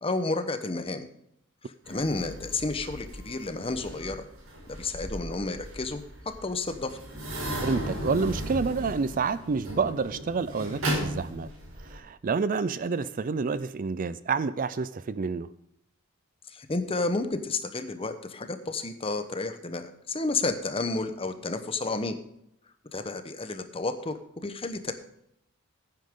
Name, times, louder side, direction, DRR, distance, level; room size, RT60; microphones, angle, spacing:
voice 1, 0.0-1.1 1.9-4.2 4.7-6.0 6.4-7.0 16.5-22.2 22.9-24.9, left 3 dB, 25° left, 9 dB, 1.0 m, -31 dB
sound 1, 1.8-11.9, equal, 70° right, 5.2 m, -36 dB
voice 2, 7.6-11.5 11.8-15.5, right 4 dB, 40° right, 16 dB, 0.4 m, -28 dB
15.5 x 9.4 x 3.7 m, 0.76 s
head